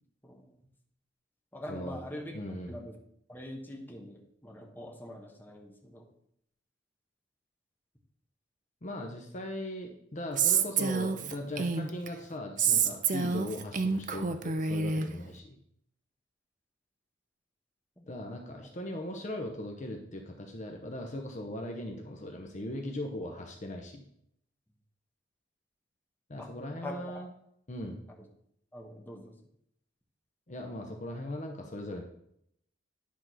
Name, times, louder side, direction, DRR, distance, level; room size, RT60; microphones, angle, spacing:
voice 1, 0.2-0.6 1.5-2.4 2.7-3.0 3.3-6.1 18.0-18.1 18.5-18.7 26.4-26.5 26.8-27.3 28.2-28.3 28.7-29.3, left 1 dB, 10° left, 0 dB, 1.3 m, -44 dB
voice 2, 1.7-2.0 2.3-2.7 8.8-15.6 18.1-24.0 26.3-27.3 27.7-28.0 30.5-32.0, left 1 dB, 40° left, 2 dB, 0.9 m, -39 dB
Female speech woman speaking, 10.4-12.1 12.6-15.1, right 6 dB, 40° right, 0.5 m, -28 dB
10.5 x 3.8 x 6.1 m, 0.72 s
head